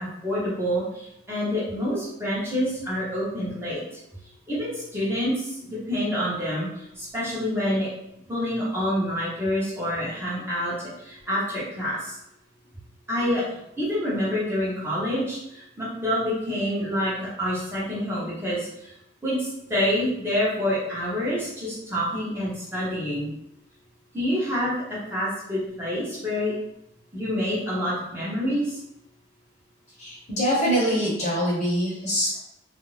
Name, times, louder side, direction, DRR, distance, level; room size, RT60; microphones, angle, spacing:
voice 1, 0.0-3.8 4.5-7.9 8.3-12.1 13.1-13.4 13.8-18.9 19.2-23.3 24.1-26.5 27.1-28.8, equal, 15° right, -9 dB, 0.8 m, -27 dB
voice 2, 30.0-32.4, equal, 40° left, -5 dB, 0.9 m, -24 dB
2.5 x 2.2 x 3.1 m, 0.81 s
head